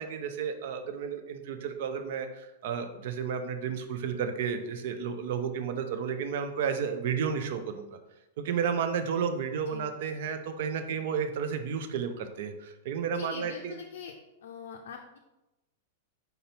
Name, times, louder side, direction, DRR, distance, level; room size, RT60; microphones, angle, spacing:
voice 1, 0.0-7.9 8.4-13.8, right 7 dB, 60° right, 8 dB, 0.5 m, -32 dB
voice 2, 13.1-14.2 14.4-15.2, left 6 dB, 70° left, 1 dB, 0.4 m, -43 dB
4.0 x 4.0 x 2.8 m, 0.98 s
hypercardioid pair, 100°, 0 cm